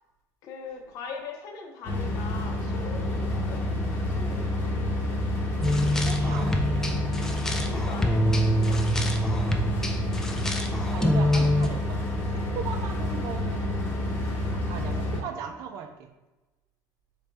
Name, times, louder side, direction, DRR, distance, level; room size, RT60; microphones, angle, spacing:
voice 1, 0.4-3.6 4.1-4.5 7.6-8.3 8.6-9.4 9.7-10.0, left 4 dB, 55° left, 2 dB, 0.7 m, -41 dB
sound 1, 1.8-15.2, left 1 dB, 30° left, 0.9 m, -29 dB
sound 2, 5.6-11.7, equal, 5° left, 0.3 m, -25 dB
voice 2, 5.7-7.1 10.9-13.7 14.7-16.1, right 7 dB, 60° right, 6 dB, 0.5 m, -38 dB
4.2 x 3.2 x 3.4 m, 1.1 s
cardioid pair, 155°, 7 cm